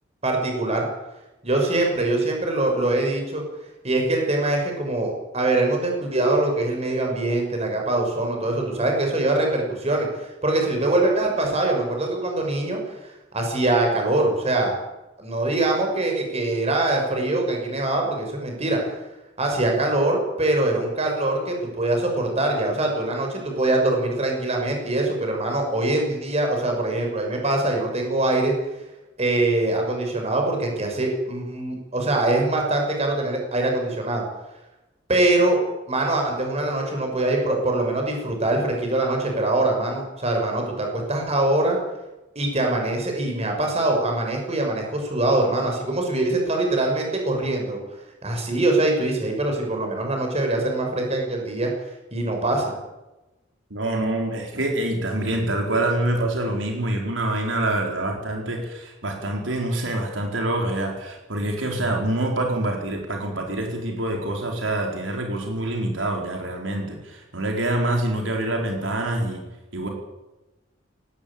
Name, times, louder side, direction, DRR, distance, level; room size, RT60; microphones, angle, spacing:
voice 1, 0.2-0.9 1.4-3.4 3.8-14.7 15.2-19.0 19.4-28.5 29.2-34.2 35.1-35.6 35.9-41.8 42.3-47.8 48.2-51.7 52.1-52.7, right 2 dB, 35° right, 2 dB, 6.5 m, -23 dB
voice 2, 53.7-69.4 69.7-69.9, right 1 dB, 90° right, 1 dB, 4.6 m, -26 dB
18.5 x 17.5 x 8.9 m, 1.0 s
head